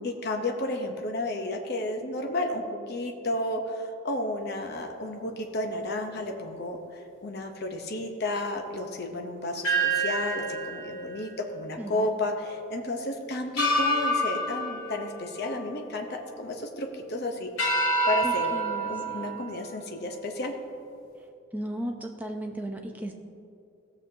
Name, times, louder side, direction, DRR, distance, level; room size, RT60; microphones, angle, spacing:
voice 1, 0.0-18.5 18.9-20.5, left 1 dB, 50° left, 3 dB, 0.7 m, -32 dB
sound 1, 9.6-12.1 12.4-12.6 13.6-16.1 16.5-17.0 17.6-20.4, right 1 dB, 85° left, 2.4 m, -29 dB
voice 2, 11.8-12.1 18.2-19.4 21.5-23.1, right 1 dB, 10° right, 2 dB, 0.6 m, -36 dB
15.5 x 7.0 x 2.7 m, 2.5 s
head